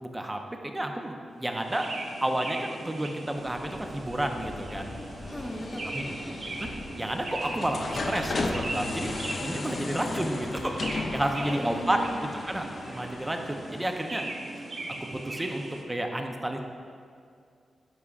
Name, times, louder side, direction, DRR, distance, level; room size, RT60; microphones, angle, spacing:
voice 1, 0.0-1.9 2.2-4.9 5.9-6.1 6.4-9.2 9.4-12.0 12.5-14.2 15.0-16.6, right 1 dB, 15° right, 4 dB, 0.6 m, -31 dB
sound 1, 1.5-15.8, right 2 dB, 55° right, 0.7 m, -39 dB
sound 2, 3.4-14.1, left 2 dB, 55° left, 0.6 m, -36 dB
voice 2, 5.2-6.4 10.0-11.0 11.4-12.3, equal, 15° left, 0 dB, 0.9 m, -39 dB
11.0 x 4.8 x 2.4 m, 2.3 s
cardioid pair, 90°, 0 cm